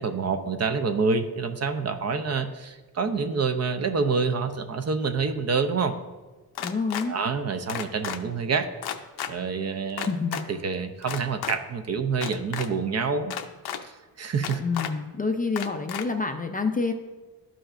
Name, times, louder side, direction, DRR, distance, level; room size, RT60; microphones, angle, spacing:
voice 1, 0.0-5.9 7.1-8.7 9.3-10.1 10.5-13.3 13.8-13.9 14.2-14.6, right 5 dB, 40° right, 8 dB, 0.5 m, -27 dB
sound 1, 6.6-7.1 7.7-8.2 8.8-9.3 10.0-10.4 11.0-11.6 12.1-12.7 13.3-13.8 14.4-14.9 15.6-16.0, left 9 dB, 70° left, 0.6 m, -32 dB
voice 2, 6.6-7.2 10.0-10.4 14.6-16.9, left 4 dB, 25° left, 5 dB, 0.4 m, -27 dB
12.5 x 5.0 x 2.5 m, 1.3 s
wide cardioid pair, 145°, 39 cm